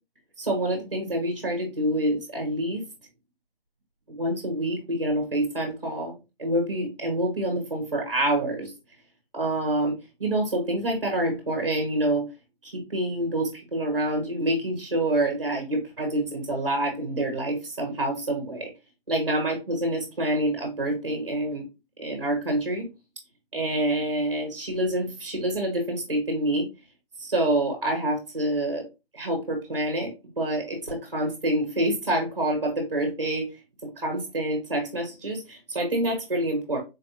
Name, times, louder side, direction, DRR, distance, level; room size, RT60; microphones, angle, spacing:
voice 1, 0.4-2.8 4.1-8.7 9.3-12.3 12.6-18.7 19.1-21.7 22.0-22.9 23.5-26.7 27.2-28.8 29.1-33.5 34.0-36.8, right 1 dB, 30° right, 2 dB, 0.9 m, -27 dB
3.9 x 2.4 x 2.8 m, 0.26 s
hypercardioid pair, 175°, 29 cm